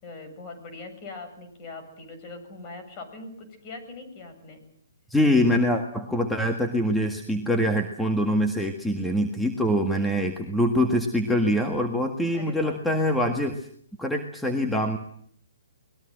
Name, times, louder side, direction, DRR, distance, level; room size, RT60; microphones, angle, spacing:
voice 1, 0.0-4.6 9.8-10.2 12.3-12.8, left 3 dB, 30° left, 7 dB, 7.6 m, -41 dB
voice 2, 5.1-13.7 14.0-15.0, equal, 5° left, 3 dB, 1.8 m, -24 dB
24.5 x 20.5 x 7.8 m, 0.64 s
hypercardioid pair, 145°, 0 cm